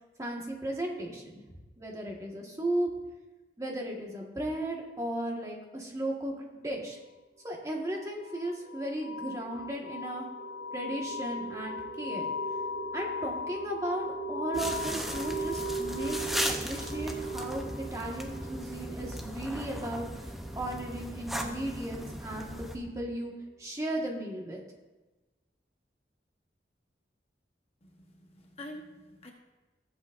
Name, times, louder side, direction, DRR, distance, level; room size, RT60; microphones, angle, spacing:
voice 1, 0.2-1.4 1.8-2.9 3.6-7.0 7.4-10.3 10.7-12.3 12.9-20.1 20.5-23.3 23.6-24.6, right 1 dB, 20° right, -1 dB, 1.5 m, -35 dB
sound 1, 7.8-22.3, equal, 85° left, 1.6 m, -38 dB
sound 2, 14.5-22.8, equal, ahead, 0.7 m, -37 dB
voice 2, 27.8-29.3, left 1 dB, 35° left, 1 dB, 1.1 m, -47 dB
15.0 x 8.2 x 2.6 m, 1.1 s
head